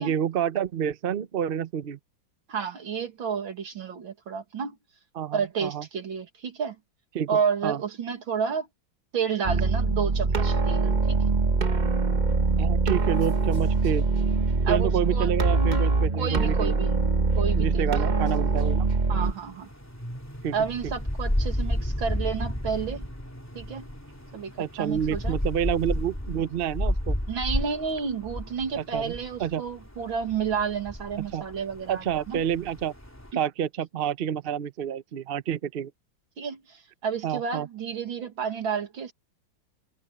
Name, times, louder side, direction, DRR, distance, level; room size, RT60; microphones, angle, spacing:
voice 1, 0.0-2.0 5.2-5.8 7.1-7.8 12.6-14.0 14.7-16.8 17.5-18.8 20.4-20.5 20.8-20.9 24.6-27.2 28.8-29.1 29.4-29.6 31.2-31.4 31.9-32.9 33.3-35.9 37.2-37.7, right 9 dB, 55° right, 0.6 m, -29 dB
voice 2, 2.5-4.8 5.3-6.8 7.3-8.7 9.1-11.2 14.6-15.3 16.1-17.0 17.4-18.1 19.1-19.7 20.5-23.1 23.5-23.9 24.3-24.5 24.8-25.4 27.3-32.5 33.3-33.4 36.4-39.1, right 6 dB, 80° right, 3.0 m, -30 dB
sound 1, 9.4-19.3, right 3 dB, 30° right, 0.9 m, -23 dB
sound 2, 19.2-33.3, left 1 dB, 10° left, 2.8 m, -32 dB
omnidirectional pair, 2.1 m